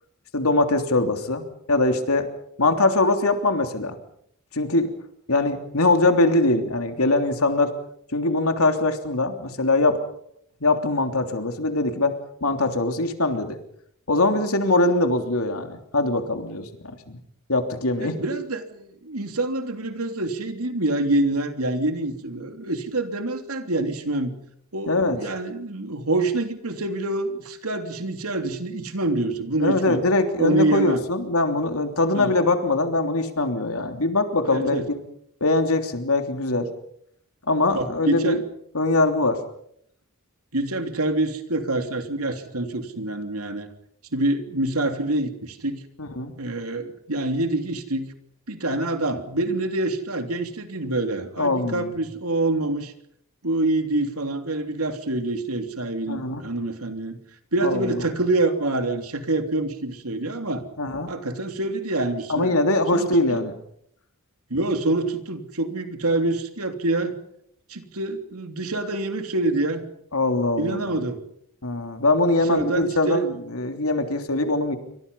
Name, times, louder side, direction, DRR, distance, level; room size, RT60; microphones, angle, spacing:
voice 1, 0.3-2.3 2.6-4.0 4.5-4.9 5.3-7.7 8.1-10.0 10.6-13.6 14.1-17.2 17.5-18.1 24.9-25.2 29.6-34.8 35.4-36.7 37.5-38.4 38.7-39.4 46.0-46.3 51.4-51.9 56.1-56.4 57.6-58.0 60.8-61.1 62.3-63.5 70.1-71.0 71.6-74.8, left 2 dB, 80° left, 6 dB, 3.3 m, -22 dB
voice 2, 18.0-24.4 24.7-30.0 30.4-31.0 32.1-32.3 34.5-34.8 37.7-38.4 40.5-43.7 44.1-45.8 46.4-48.1 48.5-52.9 53.4-57.2 57.5-60.7 61.1-62.5 62.9-63.5 64.5-67.1 67.7-69.8 70.6-71.2 72.3-73.3, right 2 dB, 90° right, 6 dB, 3.2 m, -26 dB
28.0 x 25.0 x 5.5 m, 0.71 s
head